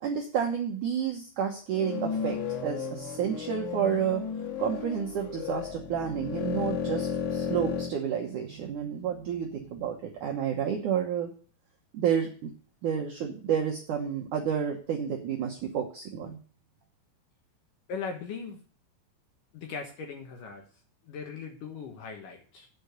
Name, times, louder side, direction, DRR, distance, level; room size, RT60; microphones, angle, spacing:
voice 1, 0.0-2.4 2.6-4.2 4.6-11.3 11.9-12.5 12.8-16.4, right 8 dB, 75° right, 1 dB, 1.8 m, -30 dB
sound 1, 1.7-7.9, left 7 dB, 85° left, 3.9 m, -33 dB
voice 2, 17.9-18.6 19.5-20.6 21.0-22.7, left 5 dB, 65° left, 4 dB, 2.3 m, -39 dB
9.5 x 5.4 x 8.0 m, 0.40 s
omnidirectional pair, 5.1 m